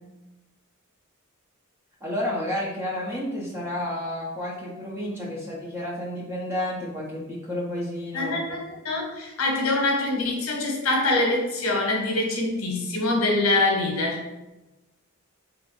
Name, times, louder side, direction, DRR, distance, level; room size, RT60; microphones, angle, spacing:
voice 1, 2.0-8.3, left 1 dB, 10° right, -5 dB, 0.5 m, -31 dB
voice 2, 8.1-14.2, left 2 dB, 75° left, 0 dB, 0.8 m, -24 dB
3.2 x 2.6 x 3.0 m, 1.0 s
head